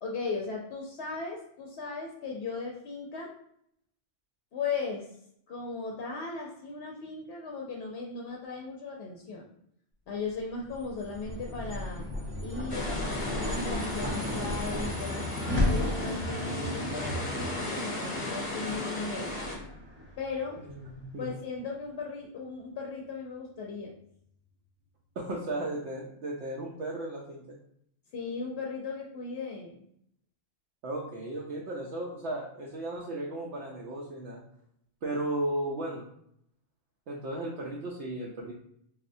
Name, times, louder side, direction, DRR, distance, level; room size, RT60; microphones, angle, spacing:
voice 1, 0.0-3.3 4.5-5.1 5.5-9.4 10.1-12.1 12.4-15.3 15.7-19.3 20.2-20.6 21.2-23.9 28.1-29.8, left 4 dB, 65° left, -1 dB, 0.7 m, -37 dB
sound 1, 10.5-21.0, left 1 dB, 15° right, 0.6 m, -34 dB
sound 2, 12.7-19.6, left 1 dB, 30° left, 0.7 m, -36 dB
voice 2, 20.7-21.3 25.2-27.4 30.8-34.4 35.0-36.1 37.1-38.5, right 1 dB, 70° right, -3 dB, 0.8 m, -35 dB
4.1 x 2.1 x 2.6 m, 0.71 s
omnidirectional pair, 1.2 m